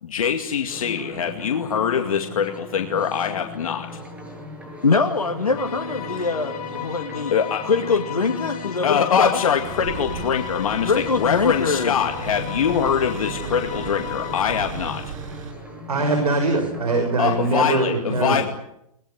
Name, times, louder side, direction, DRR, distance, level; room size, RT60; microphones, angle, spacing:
voice 1, 0.0-3.9 7.3-7.7 8.8-15.1 17.2-18.4, left 7 dB, 65° left, 2.3 m, -23 dB
sound 1, 0.7-17.8, left 1 dB, 5° right, 7.2 m, -38 dB
voice 2, 4.8-7.3 7.6-9.4 10.9-11.9, left 4 dB, 85° left, 2.1 m, -23 dB
sound 2, 5.5-14.6, left 8 dB, 35° left, 7.3 m, -35 dB
sound 3, 9.6-15.5, right 5 dB, 60° right, 7.1 m, -36 dB
voice 3, 15.9-18.4, right 3 dB, 80° right, 5.9 m, -22 dB
22.5 x 20.5 x 9.8 m
hypercardioid pair, 120°, 19 cm